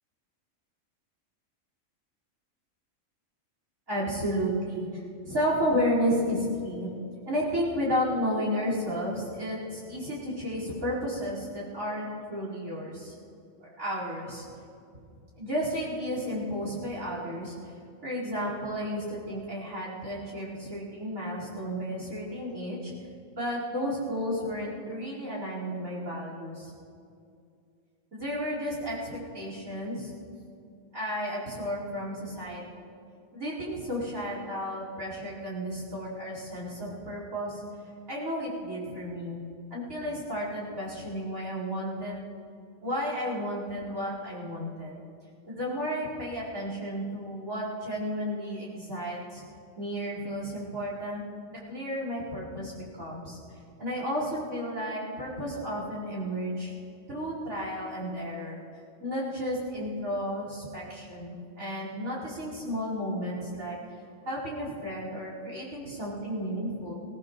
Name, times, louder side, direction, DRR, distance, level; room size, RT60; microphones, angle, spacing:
voice 1, 3.9-6.9 7.3-13.1 13.6-14.5 15.4-17.6 18.0-22.9 23.3-26.7 28.1-30.1 30.9-32.9 33.3-37.6 38.1-39.4 39.7-42.3 42.8-45.0 45.5-49.4 49.8-51.2 51.5-53.4 53.8-56.7 57.1-58.6 59.0-63.8 64.3-66.9, equal, 75° right, -5 dB, 5.4 m, -32 dB
23.0 x 18.0 x 3.2 m, 2.4 s
omnidirectional pair, 1.4 m